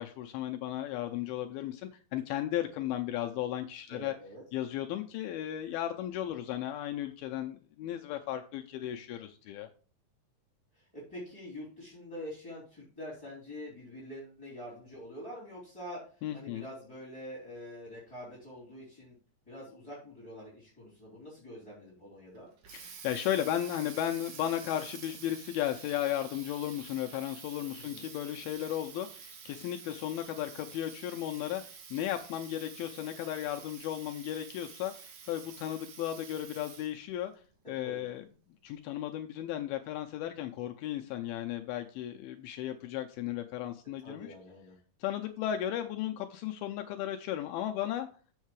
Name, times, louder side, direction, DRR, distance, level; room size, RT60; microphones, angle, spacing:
voice 1, 0.0-4.1 4.5-9.7 16.2-16.7 22.7-37.3 37.7-38.2 38.6-44.3 45.0-48.1, left 12 dB, 80° left, 4 dB, 2.4 m, -35 dB
voice 2, 3.9-4.4 10.7-16.0 16.3-19.1 19.5-22.5 27.7-28.1 37.8-38.1 44.0-44.8, equal, 10° left, -6 dB, 3.4 m, -45 dB
Water tap faucet, 22.3-37.0, right 6 dB, 65° right, 2.8 m, -49 dB
7.4 x 6.5 x 4.7 m, 0.40 s
omnidirectional pair, 4.6 m